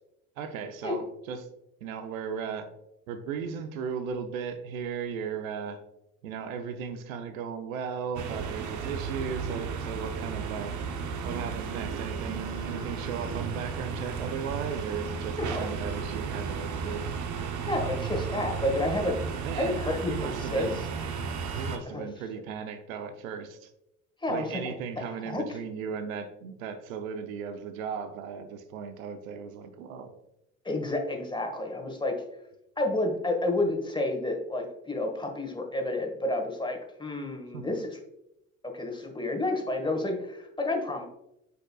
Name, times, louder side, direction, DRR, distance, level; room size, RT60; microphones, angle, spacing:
voice 1, 0.4-1.4 1.8-2.7 3.1-5.8 6.2-10.8 11.2-17.1 19.4-19.8 20.1-20.8 21.6-23.7 24.3-30.1 37.5-37.6, right 6 dB, 80° right, 9 dB, 0.7 m, -36 dB
sound 1, 8.2-21.8, right 6 dB, 45° right, 0.9 m, -34 dB
voice 2, 17.7-19.2 19.5-20.7 21.8-22.1 24.2-24.6 25.0-25.4 30.6-32.2 32.8-38.0 38.6-41.0, left 2 dB, 10° left, 3 dB, 1.5 m, -30 dB
7.9 x 5.6 x 2.3 m, 0.85 s
hypercardioid pair, 55°, 40 cm